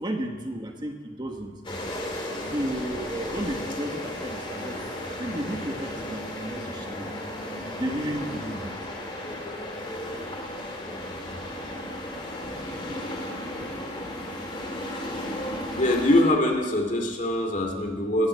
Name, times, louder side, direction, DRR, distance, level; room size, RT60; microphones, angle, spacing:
voice 1, 0.0-1.5 2.5-7.2 7.8-8.8, right 1 dB, 25° right, 4 dB, 1.2 m, -33 dB
sound 1, 1.6-16.2, left 1 dB, 30° left, 2.7 m, -34 dB
voice 2, 15.8-18.3, left 1 dB, 45° left, 3 dB, 2.4 m, -23 dB
19.5 x 7.9 x 8.1 m, 1.5 s
head